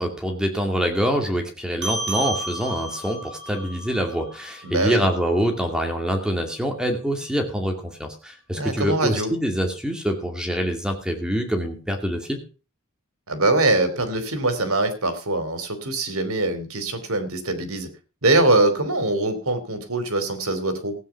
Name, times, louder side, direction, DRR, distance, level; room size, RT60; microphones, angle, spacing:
voice 1, 0.0-12.4, equal, 5° right, 3 dB, 2.4 m, -25 dB
sound 1, 1.8-6.6, right 2 dB, 55° right, 7.1 m, -34 dB
voice 2, 4.6-5.1 8.5-9.3 13.3-17.9 18.2-20.9, right 2 dB, 75° right, 10 dB, 3.3 m, -23 dB
16.0 x 9.1 x 5.9 m, 0.36 s
head